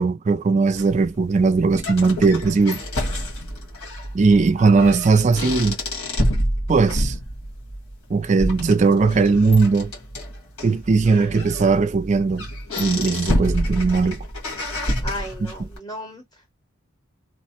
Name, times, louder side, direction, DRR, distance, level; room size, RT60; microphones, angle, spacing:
voice 1, 0.0-2.8 4.1-5.8 6.7-7.2 8.1-9.9 10.6-12.5 12.8-14.3, right 4 dB, 30° right, 0.3 m, -18 dB
sound 1, 0.8-15.8, equal, 85° left, 1.7 m, -28 dB
voice 2, 15.0-16.5, left 1 dB, 15° left, 0.8 m, -35 dB
3.1 x 2.1 x 2.8 m
head